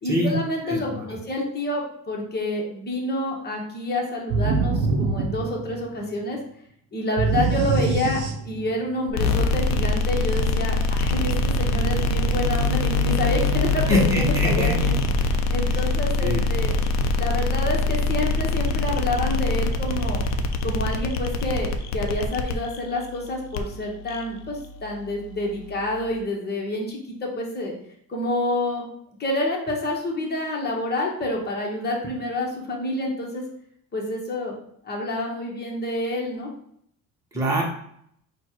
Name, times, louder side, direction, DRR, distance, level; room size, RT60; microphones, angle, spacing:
voice 1, 0.0-6.4 6.9-8.2 8.4-11.3 11.6-16.7 17.2-20.2 20.6-27.7 28.1-28.9 29.2-33.4 33.9-34.5 34.8-36.5, left 1 dB, 30° left, -1 dB, 1.4 m, -28 dB
voice 2, 0.7-1.0 13.9-14.7 16.2-16.4 37.3-37.6, left 1 dB, 10° right, -4 dB, 1.3 m, -23 dB
sound 1, 4.3-6.0 7.2-8.8, right 3 dB, 65° right, 0.7 m, -24 dB
sound 2, 9.1-26.2, left 2 dB, 55° left, 0.6 m, -24 dB
4.2 x 2.5 x 4.6 m, 0.68 s
cardioid pair, 95°, 33 cm